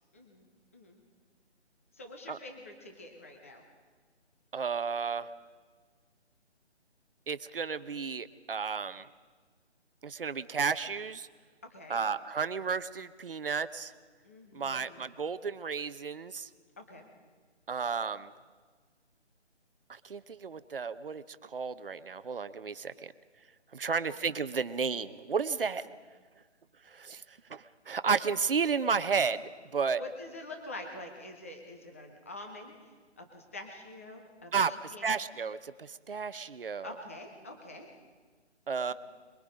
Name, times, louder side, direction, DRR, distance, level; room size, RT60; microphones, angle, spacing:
voice 1, 0.1-0.5 0.7-1.0 1.9-3.6 11.6-12.0 14.2-15.1 16.8-17.1 23.9-24.2 30.0-35.2 36.8-37.9 38.9-39.0, left 2 dB, 10° left, 3 dB, 0.8 m, -46 dB
voice 2, 4.5-5.3 7.3-9.1 10.0-11.3 11.9-13.9 14.5-16.5 17.7-18.3 19.9-23.1 23.7-25.9 26.9-29.4 29.7-30.0 34.5-36.9 38.7-38.9, right 5 dB, 50° right, 13 dB, 0.9 m, -32 dB
23.0 x 22.0 x 5.1 m, 1.5 s
figure-of-eight pair, 170°, 35 cm